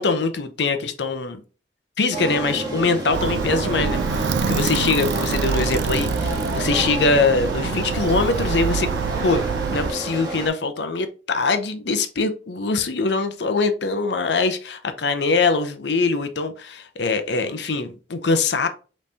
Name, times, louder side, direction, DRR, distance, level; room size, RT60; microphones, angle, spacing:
voice 1, 0.0-1.4 2.0-8.9 9.2-9.4 9.7-18.7, left 3 dB, 70° left, 0.7 m, -23 dB
sound 1, 2.1-10.5, right 2 dB, 25° right, 1.6 m, -29 dB
Alarm, 3.1-9.9, right 5 dB, 90° right, 0.4 m, -26 dB
5.3 x 3.2 x 2.8 m
head